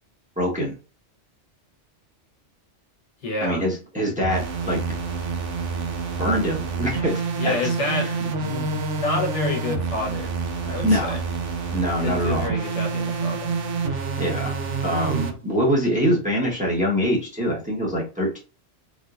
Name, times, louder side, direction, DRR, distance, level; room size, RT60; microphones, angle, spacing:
voice 1, 0.4-0.7 3.4-4.8 6.2-7.5 10.8-11.1 11.7-12.5 14.2-18.4, equal, 5° right, 1.3 m, -24 dB
voice 2, 3.2-3.6 7.4-10.3 10.6-11.2 12.0-13.6, left 2 dB, 70° left, 1.5 m, -29 dB
sound 1, 4.2-15.3, right 4 dB, 90° right, 1.1 m, -28 dB
3.6 x 3.5 x 2.5 m
omnidirectional pair, 1.2 m